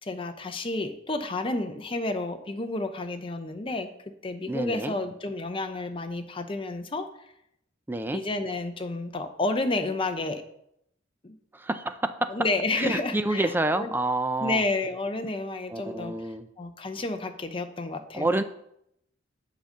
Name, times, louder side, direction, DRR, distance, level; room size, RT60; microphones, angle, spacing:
voice 1, 0.0-3.9 4.2-7.1 8.1-10.4 11.2-11.3 12.3-13.9 14.4-18.3, left 2 dB, 25° left, 7 dB, 0.7 m, -30 dB
voice 2, 4.5-4.9 7.9-8.2 11.5-12.3 12.8-14.6 15.7-16.5 18.1-18.4, right 2 dB, 10° right, 9 dB, 0.4 m, -28 dB
7.7 x 5.2 x 6.6 m, 0.77 s
head